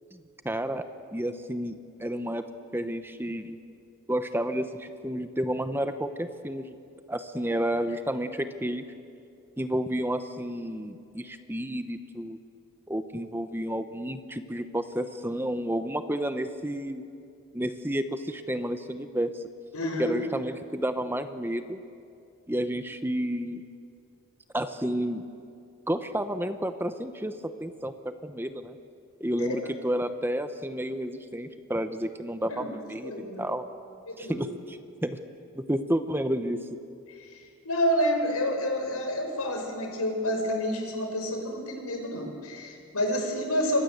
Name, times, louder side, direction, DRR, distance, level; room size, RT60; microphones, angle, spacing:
voice 1, 0.4-0.9 1.1-2.4 2.7-3.6 4.1-6.8 7.1-8.8 9.6-12.4 12.9-17.0 17.5-19.4 20.0-21.8 22.5-23.6 24.5-25.3 25.9-28.8 29.2-33.6 34.2-35.2 35.6-36.6, equal, 10° right, 9 dB, 0.9 m, -31 dB
voice 2, 19.7-20.1 29.4-29.7 32.5-32.7 33.0-33.4 34.1-34.4 37.1-43.8, equal, 85° left, 2 dB, 6.0 m, -29 dB
29.5 x 25.5 x 8.0 m, 2.4 s
head